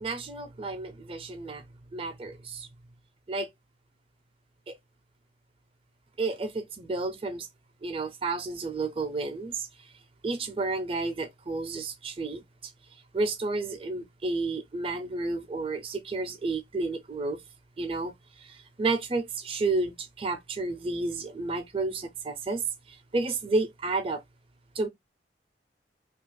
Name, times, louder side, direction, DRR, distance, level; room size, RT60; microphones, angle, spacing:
voice 1, 0.0-1.6 1.9-2.7 3.3-3.5 4.7-4.8 6.2-7.5 7.8-9.7 10.2-12.4 13.1-17.4 17.8-18.1 18.5-22.6 22.9-24.2 24.8-24.9, right 3 dB, 30° right, 0.4 m, -31 dB
2.8 x 2.4 x 3.1 m
head